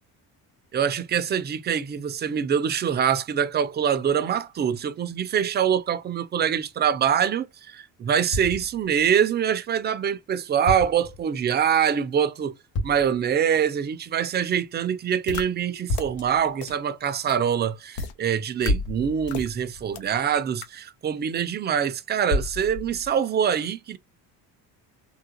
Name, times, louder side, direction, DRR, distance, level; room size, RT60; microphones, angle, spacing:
voice 1, 0.7-12.6 12.8-24.0, right 8 dB, 25° right, 0.4 m, -24 dB
sound 1, 8.3-9.1 10.7-11.2 12.7-13.3 15.9-16.5 18.7-20.1 22.3-23.2, left 1 dB, 60° left, 2.3 m, -30 dB
sound 2, 15.3-15.4 15.9-16.0 16.6-16.7 17.3-17.4 17.9-18.1 18.6-18.7 19.3-19.5 19.9-20.0 20.6-20.7, left 6 dB, 85° left, 0.8 m, -33 dB
3.6 x 2.2 x 2.8 m
cardioid pair, 105°, 39 cm